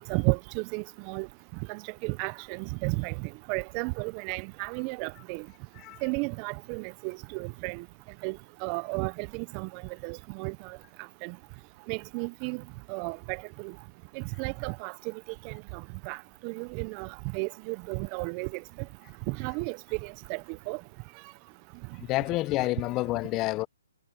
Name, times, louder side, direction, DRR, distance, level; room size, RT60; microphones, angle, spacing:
voice 1, 0.1-1.3 1.7-5.4 6.0-7.8 8.2-10.8 11.2-11.3 11.9-12.6 12.9-13.7 14.1-15.1 15.4-16.2 16.4-18.6 19.3-20.4 20.7-20.8, right 30 dB, 30° right, 1.0 m, -33 dB
voice 2, 22.1-23.7, left 19 dB, 25° left, 1.1 m, -28 dB
hypercardioid pair, 135°, 0 cm